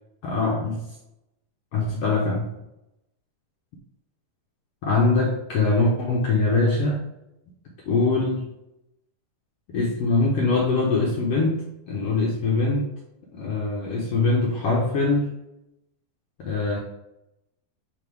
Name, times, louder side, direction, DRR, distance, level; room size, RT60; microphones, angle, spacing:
voice 1, 0.2-0.8 1.7-2.5 4.8-7.0 7.8-8.5 9.7-12.9 13.3-15.3 16.4-16.8, left 3 dB, 80° left, -2 dB, 1.4 m, -23 dB
8.1 x 3.9 x 3.4 m, 0.87 s
omnidirectional pair, 4.0 m